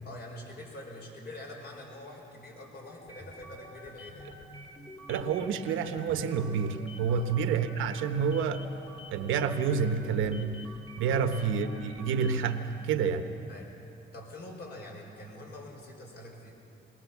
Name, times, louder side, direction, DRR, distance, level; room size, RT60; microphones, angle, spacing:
voice 1, 0.0-4.4 7.1-7.3 11.1-11.5 13.5-13.7 14.1-16.5, left 1 dB, 55° left, 0 dB, 5.4 m, -45 dB
sound 1, 3.0-12.6, equal, 30° left, 2.8 m, -48 dB
voice 2, 5.1-8.8 9.1-10.6 11.0-13.3, right 6 dB, 90° right, 8 dB, 1.1 m, -29 dB
21.5 x 18.0 x 7.2 m, 2.9 s
cardioid pair, 90°, 20 cm